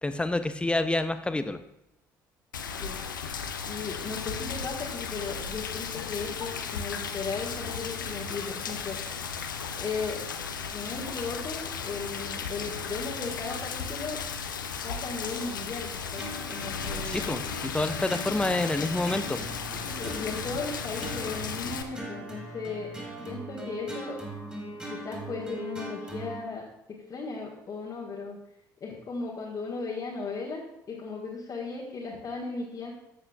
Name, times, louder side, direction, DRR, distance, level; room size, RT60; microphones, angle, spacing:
voice 1, 0.0-1.6 17.1-19.4, left 2 dB, 10° left, 11 dB, 0.6 m, -28 dB
Rain, 2.5-21.8, left 6 dB, 75° left, 0.6 m, -35 dB
voice 2, 3.7-9.0 9.8-10.2 10.6-14.2 14.8-17.3 19.8-24.2 24.7-28.4 28.8-32.9, left 4 dB, 35° left, -5 dB, 1.7 m, -36 dB
sound 1, 16.2-26.4, right 1 dB, 10° right, 3.3 m, -40 dB
13.5 x 7.9 x 2.5 m, 0.89 s
figure-of-eight pair, 55°, 11 cm